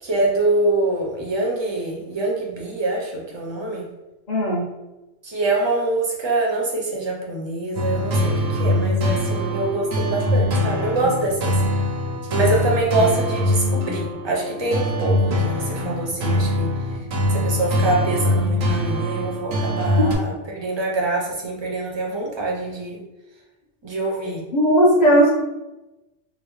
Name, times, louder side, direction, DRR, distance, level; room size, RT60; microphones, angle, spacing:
voice 1, 0.0-3.8 5.2-11.6 12.3-16.7 17.3-23.0 23.8-24.4, right 2 dB, 30° right, -2 dB, 0.5 m, -24 dB
voice 2, 4.3-4.7 24.5-25.3, equal, 40° left, -4 dB, 0.7 m, -16 dB
sound 1, 7.8-20.2, left 1 dB, 85° right, 1.1 m, -23 dB
3.8 x 2.0 x 3.1 m, 1.0 s
omnidirectional pair, 1.3 m